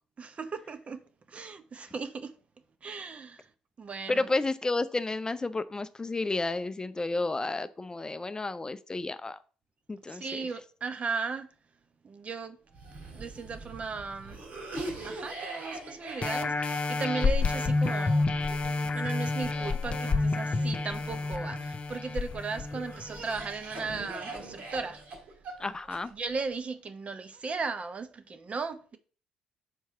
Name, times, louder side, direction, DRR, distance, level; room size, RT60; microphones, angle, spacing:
voice 1, 0.2-1.0 1.3-2.3 2.8-3.5 3.8-4.3 10.1-11.5 12.0-12.6 13.1-14.4 15.0-18.3 18.9-25.0 26.1-29.0, right 4 dB, 40° right, 0.9 m, -36 dB
voice 2, 4.1-9.4 9.9-10.5 25.6-26.1, left 2 dB, 20° left, 0.5 m, -31 dB
Cough, 12.7-21.9 22.5-26.4, right 2 dB, 60° right, 2.6 m, -43 dB
sound 1, 16.2-23.4 23.9-24.0, left 3 dB, 40° left, 0.8 m, -29 dB
4.6 x 4.6 x 5.6 m
hypercardioid pair, 50°, 3 cm